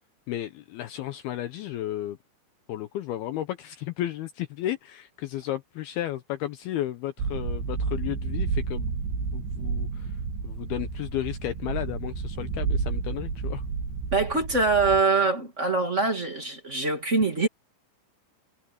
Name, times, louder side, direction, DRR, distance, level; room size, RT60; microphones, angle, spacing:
voice 1, 0.3-2.2 2.7-8.9 9.3-10.2 10.4-13.6, left 13 dB, 75° left, 2.4 m, -33 dB
sound 1, 7.2-15.0, right 4 dB, 85° right, 5.8 m, -31 dB
voice 2, 14.1-17.5, right 3 dB, 35° right, 1.2 m, -24 dB
omnidirectional pair, 5.2 m